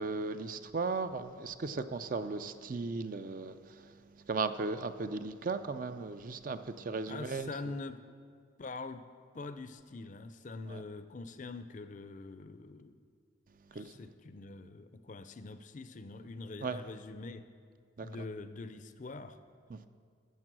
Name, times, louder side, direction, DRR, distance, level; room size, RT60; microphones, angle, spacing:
voice 1, 0.0-3.9 4.3-7.5 10.7-10.8 13.7-13.9 16.6-16.8 18.0-18.1 19.7-19.9, right 4 dB, 40° right, 11 dB, 0.4 m, -36 dB
voice 2, 7.1-8.0 8.6-9.1 9.3-12.9 13.7-17.4 18.0-19.4, left 3 dB, 40° left, 11 dB, 0.5 m, -44 dB
13.5 x 7.3 x 6.1 m, 2.1 s
head